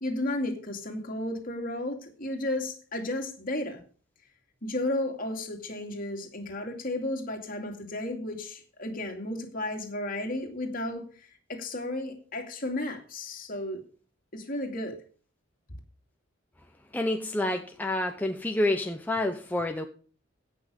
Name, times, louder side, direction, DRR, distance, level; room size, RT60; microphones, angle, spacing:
voice 1, 0.0-3.8 4.6-11.0 11.5-13.8 14.3-15.0, left 1 dB, 45° left, 2.6 m, -33 dB
voice 2, 16.9-19.9, left 1 dB, 10° left, 0.8 m, -28 dB
16.5 x 6.4 x 5.3 m
head